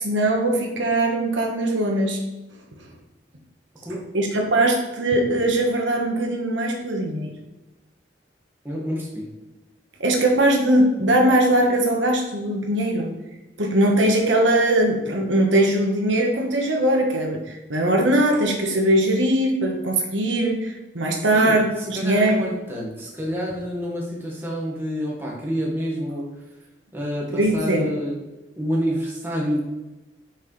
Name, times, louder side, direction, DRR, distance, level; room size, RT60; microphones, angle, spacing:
voice 1, 0.0-2.2 4.1-7.3 10.0-13.1 13.6-22.4 27.3-27.9, right 1 dB, 90° right, 1 dB, 1.5 m, -20 dB
voice 2, 8.6-9.3 21.3-26.3 26.9-28.2 28.6-29.6, equal, 10° right, -4 dB, 1.9 m, -28 dB
8.0 x 6.5 x 3.4 m, 1.0 s
head